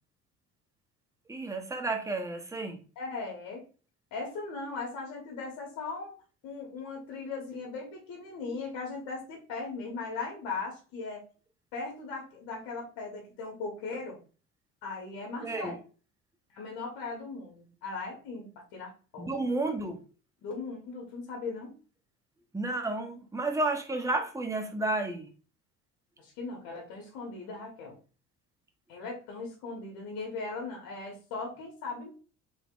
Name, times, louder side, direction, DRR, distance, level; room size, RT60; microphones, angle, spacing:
voice 1, 1.3-2.8 15.4-15.7 19.2-20.0 22.5-25.3, right 2 dB, 10° right, 0.7 m, -31 dB
voice 2, 2.9-3.6 4.1-6.1 6.4-11.2 11.7-14.2 14.8-15.7 16.5-19.3 20.4-21.7 26.2-27.9 28.9-32.1, left 4 dB, 70° left, 1.1 m, -38 dB
3.4 x 3.4 x 2.3 m
hypercardioid pair, 65°, 36 cm